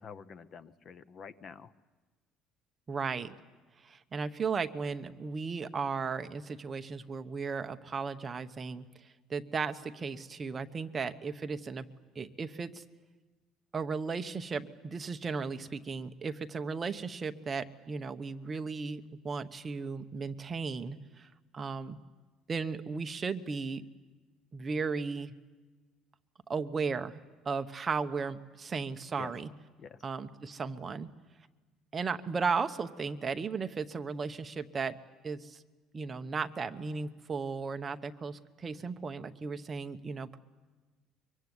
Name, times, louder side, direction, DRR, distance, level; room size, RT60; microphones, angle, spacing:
voice 1, 0.0-1.7 29.2-29.3 29.8-30.0, left 6 dB, 35° left, 15 dB, 0.8 m, -47 dB
voice 2, 2.9-3.3 3.8-8.8 9.3-11.9 12.1-12.8 13.7-22.0 22.5-23.8 24.5-25.3 26.5-27.2 27.4-29.5 30.0-31.1 31.9-35.0 35.2-35.6 35.9-40.4, right 5 dB, 20° right, 8 dB, 1.0 m, -35 dB
24.5 x 24.0 x 9.6 m, 1.3 s
cardioid pair, 160°, 0 cm